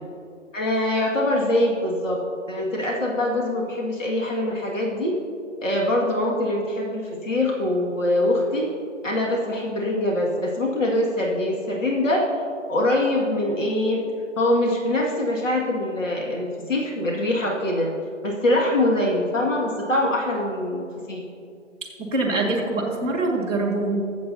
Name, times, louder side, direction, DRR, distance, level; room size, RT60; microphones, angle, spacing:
voice 1, 0.5-2.2 2.5-5.1 5.6-8.7 9.0-12.2 12.7-14.0 14.4-17.9 18.2-21.2, left 1 dB, 75° left, -2 dB, 2.2 m, -23 dB
voice 2, 21.8-24.0, right 2 dB, 10° left, -10 dB, 0.5 m, -24 dB
20.5 x 7.6 x 2.8 m, 2.5 s
figure-of-eight pair, 150°, 39 cm